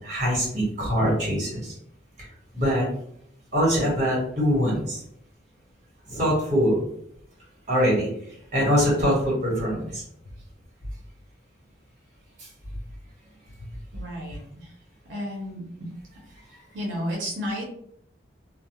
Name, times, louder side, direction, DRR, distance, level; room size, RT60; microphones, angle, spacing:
voice 1, 0.0-1.7 2.2-2.3 2.5-2.8 3.5-5.0 6.1-6.8 7.7-8.1 8.5-10.0 12.4-12.5, equal, 40° right, -4 dB, 1.1 m, -23 dB
voice 2, 13.9-14.7 15.1-15.6 16.7-17.6, equal, 85° right, -2 dB, 0.6 m, -32 dB
2.2 x 2.0 x 2.8 m, 0.70 s
head